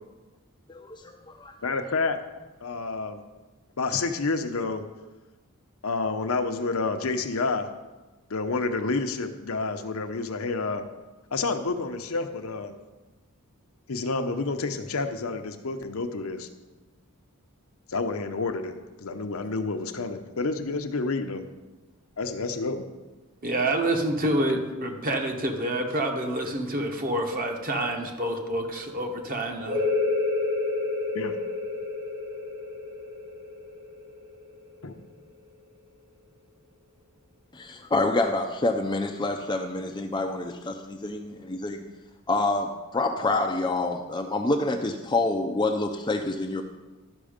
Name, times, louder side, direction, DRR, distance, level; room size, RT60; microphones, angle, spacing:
voice 1, 0.7-1.5 37.5-41.8 42.3-46.6, left 2 dB, 20° left, 4 dB, 0.5 m, -27 dB
voice 2, 1.6-2.2 2.6-3.2 3.8-4.9 5.8-7.7 8.3-10.8 11.3-12.8 13.9-16.5 17.9-21.4 22.2-22.9 31.1-31.4 34.8-35.0, left 3 dB, 65° left, 7 dB, 0.8 m, -29 dB
voice 3, 23.4-29.8, right 1 dB, 40° right, 3 dB, 1.3 m, -27 dB
sound 1, 29.7-35.0, left 3 dB, 90° right, 3.5 m, -29 dB
12.0 x 6.2 x 5.1 m, 1.2 s
head